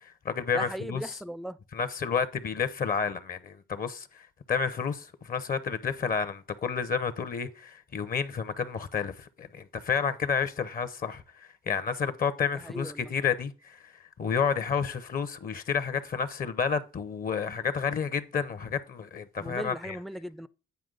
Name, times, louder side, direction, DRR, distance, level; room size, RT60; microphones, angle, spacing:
voice 1, 0.0-1.2 1.7-13.9 14.2-20.0, left 6 dB, 45° left, 0.7 m, -30 dB
voice 2, 0.5-1.6 12.5-13.1 19.4-20.5, equal, ahead, 0.3 m, -38 dB
9.4 x 4.6 x 3.8 m
cardioid pair, 90°, 20 cm